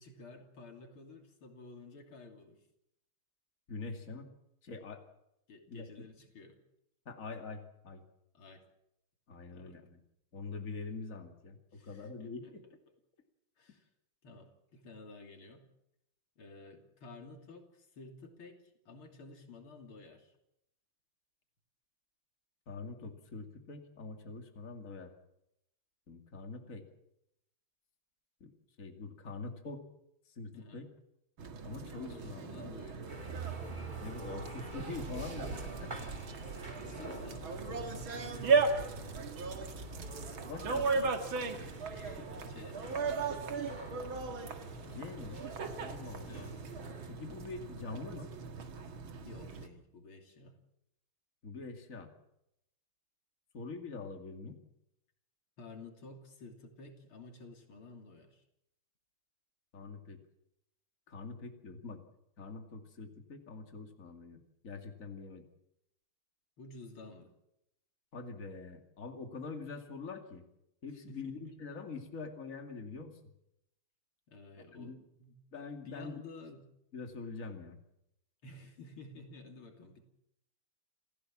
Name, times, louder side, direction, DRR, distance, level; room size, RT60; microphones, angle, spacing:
voice 1, 0.0-2.6 5.5-6.6 8.3-8.6 9.5-9.8 11.7-12.5 13.6-13.9 14.2-15.7 16.4-20.4 30.5-30.9 32.1-33.1 36.7-38.8 41.9-42.8 46.2-46.6 49.3-50.6 55.6-58.4 66.6-67.3 71.1-71.4 74.3-75.4 75.9-76.7 78.4-80.0, left 3 dB, 90° left, 4 dB, 3.8 m, -52 dB
voice 2, 3.7-4.3 4.6-5.0 5.7-6.1 7.1-8.0 9.3-10.0 10.3-11.6 11.8-12.6 22.7-25.1 26.1-26.8 28.4-28.5 28.8-29.8 30.4-30.9 31.6-32.8 34.0-35.9 40.3-41.1 44.9-45.4 45.8-46.5 47.1-48.3 51.4-52.1 53.5-54.6 59.7-60.2 61.1-62.0 62.4-65.5 68.1-70.4 70.8-73.2 74.7-75.0 75.5-76.2 76.9-77.8, left 4 dB, 40° left, 4 dB, 2.8 m, -44 dB
sound 1, 31.4-49.7, right 4 dB, 75° right, 2.6 m, -37 dB
sound 2, 33.1-47.1, right 2 dB, 20° right, 2.9 m, -48 dB
28.5 x 15.5 x 7.4 m, 0.81 s
omnidirectional pair, 2.3 m